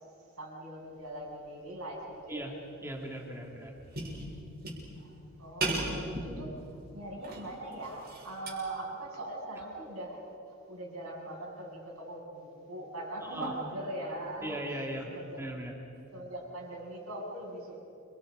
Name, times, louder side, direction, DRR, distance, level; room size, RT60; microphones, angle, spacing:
voice 1, 0.3-2.4 5.0-15.4 16.1-17.8, right 1 dB, 85° right, -3 dB, 7.8 m, -41 dB
sound 1, 2.1-2.4 2.8-2.9 3.2-5.1 5.6-6.9 7.2-8.5, right 2 dB, 45° right, 6.4 m, -36 dB
voice 2, 2.8-3.7 13.3-13.5 14.4-15.1 15.4-15.7, right 1 dB, 10° right, 0 dB, 3.0 m, -38 dB
29.5 x 24.5 x 5.5 m, 2.6 s
head